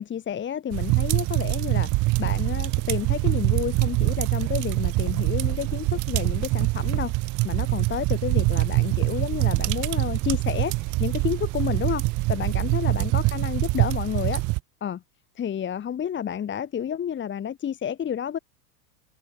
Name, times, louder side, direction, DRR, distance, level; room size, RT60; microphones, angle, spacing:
voice 1, 0.0-7.1 7.4-14.4 14.8-15.0 15.4-18.4, left 9 dB, 25° left, 2.0 m, -30 dB
sound 1, 0.7-14.6, right 22 dB, 40° right, 1.0 m, -24 dB
hypercardioid pair, 105°, 46 cm